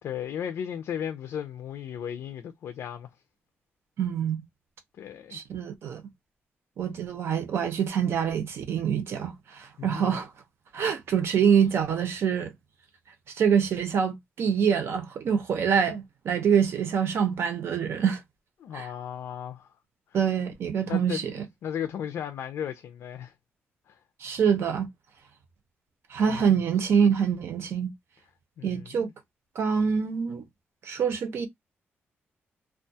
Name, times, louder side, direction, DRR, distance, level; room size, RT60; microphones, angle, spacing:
voice 1, 0.0-3.1 5.0-5.4 9.8-10.2 18.6-19.7 20.9-23.3 23.9-24.0 26.3-26.6 28.6-29.1, left 9 dB, 80° left, 0.4 m, -35 dB
voice 2, 4.0-4.4 5.3-6.0 6.8-10.3 10.7-12.5 13.4-18.2 18.7-18.9 20.1-21.4 24.2-24.9 26.1-27.9 28.6-29.1 29.6-30.4 30.8-31.5, right 7 dB, 70° right, 0.7 m, -25 dB
2.3 x 2.2 x 2.7 m
wide cardioid pair, 150°, 4 cm